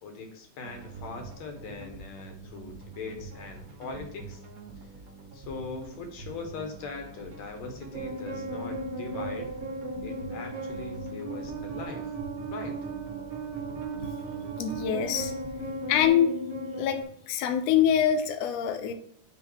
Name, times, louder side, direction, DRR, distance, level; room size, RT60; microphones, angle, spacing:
voice 1, 0.0-4.4 5.3-9.5 10.0-12.1 12.5-12.8, left 4 dB, 60° left, 4 dB, 2.3 m, -40 dB
sound 1, 0.6-16.1, right 4 dB, 80° right, 0.7 m, -46 dB
sound 2, 7.9-17.0, right 2 dB, 25° right, 2.6 m, -36 dB
voice 2, 14.6-15.3 15.9-16.3 16.8-17.0 17.3-18.9, left 9 dB, 85° left, 7 dB, 1.4 m, -24 dB
9.6 x 3.4 x 4.7 m, 0.67 s
omnidirectional pair, 3.8 m